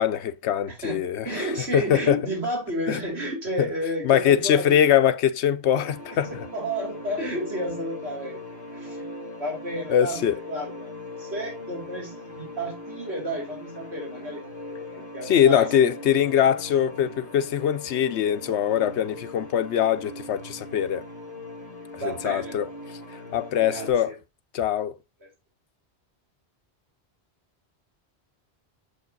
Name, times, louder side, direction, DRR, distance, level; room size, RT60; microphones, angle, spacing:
voice 1, 0.0-1.4 1.7-2.2 2.9-3.0 3.6-3.7 4.0-6.3 9.9-10.3 15.3-21.0 22.0-22.7 23.3-24.1 24.5-24.9, left 9 dB, 85° left, 1.0 m, -22 dB
voice 2, 0.7-4.8 6.1-8.4 8.7-9.1 9.4-10.9 11.2-15.7 22.0-22.6 23.6-24.2 25.2-25.3, right 1 dB, 75° right, 3.1 m, -32 dB
sound 1, 5.7-23.9, left 2 dB, 40° left, 1.6 m, -40 dB
7.2 x 5.2 x 3.8 m
omnidirectional pair, 1.1 m